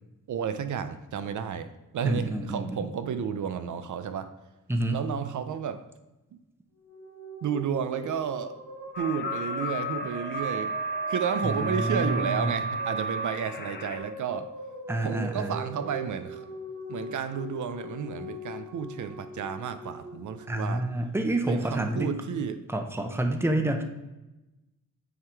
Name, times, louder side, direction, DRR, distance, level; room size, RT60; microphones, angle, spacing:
voice 1, 0.3-4.3 4.9-5.8 7.4-8.6 9.0-10.7 11.1-14.5 15.0-16.5 16.9-20.9 21.5-22.6, right 7 dB, 70° right, 10 dB, 0.6 m, -32 dB
voice 2, 2.0-2.9 4.7-5.0 11.4-12.5 14.9-15.5 20.5-22.2 22.7-23.8, right 1 dB, 10° right, 5 dB, 0.7 m, -28 dB
sound 1, 6.8-21.2, equal, 55° right, 2.1 m, -41 dB
sound 2, 8.9-14.0, right 1 dB, 35° left, 0.9 m, -33 dB
9.5 x 3.8 x 4.6 m, 1.0 s
cardioid pair, 100°, 31 cm